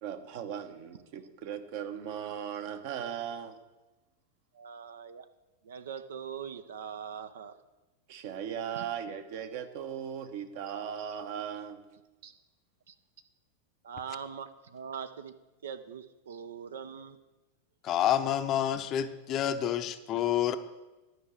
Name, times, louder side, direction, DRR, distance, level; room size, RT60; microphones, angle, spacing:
voice 1, 0.0-3.6 8.1-11.9 12.2-12.3, right 8 dB, 50° right, 7 dB, 1.0 m, -38 dB
voice 2, 4.5-5.3 5.6-7.6 8.8-8.9 12.9-13.0 13.8-15.3 15.6-17.2, right 7 dB, 65° right, 10 dB, 0.5 m, -42 dB
voice 3, 17.8-20.5, left 10 dB, 35° left, 10 dB, 0.6 m, -28 dB
11.0 x 5.6 x 7.5 m, 1.1 s
figure-of-eight pair, 90°, 0 cm